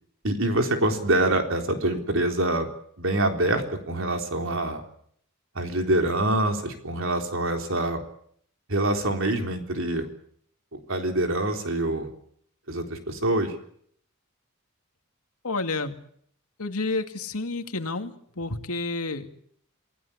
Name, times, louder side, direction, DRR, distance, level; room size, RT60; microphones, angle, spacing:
voice 1, 0.2-2.7 3.0-4.8 5.6-8.0 8.7-10.1 10.7-12.1 12.7-13.5, right 1 dB, 60° right, 5 dB, 3.8 m, -25 dB
voice 2, 15.4-15.9 16.6-19.4, left 3 dB, 80° left, 7 dB, 2.4 m, -30 dB
27.5 x 17.5 x 8.6 m, 0.66 s
head